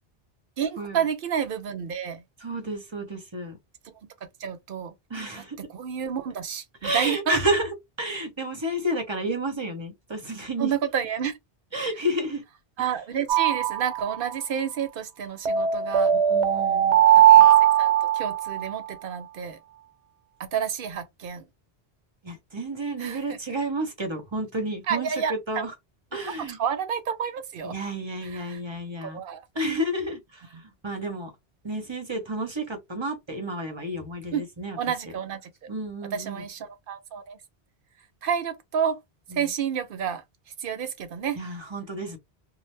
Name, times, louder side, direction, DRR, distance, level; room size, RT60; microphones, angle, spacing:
voice 1, 0.6-2.2 3.8-3.9 4.2-4.9 5.3-7.4 10.6-11.4 11.9-12.0 12.8-16.1 17.1-17.5 17.8-19.6 20.4-21.4 23.0-23.4 24.8-25.7 26.2-27.8 28.2-28.6 29.0-29.5 30.5-30.6 34.3-34.4 34.8-35.5 36.1-37.4 38.2-39.0 39.3-41.6, right 8 dB, 60° right, 0.7 m, -30 dB
voice 2, 2.4-3.5 5.1-5.6 6.8-7.6 8.0-10.7 11.7-12.4 16.3-17.0 22.2-25.1 25.5-25.7 26.1-26.6 27.7-29.2 29.6-30.2 30.8-31.3 31.6-34.7 35.7-36.4 41.4-42.2, right 1 dB, 30° right, 0.7 m, -30 dB
sound 1, 13.3-14.3 15.5-18.7, right 11 dB, 90° right, 0.9 m, -19 dB
2.8 x 2.0 x 3.2 m
omnidirectional pair, 1.1 m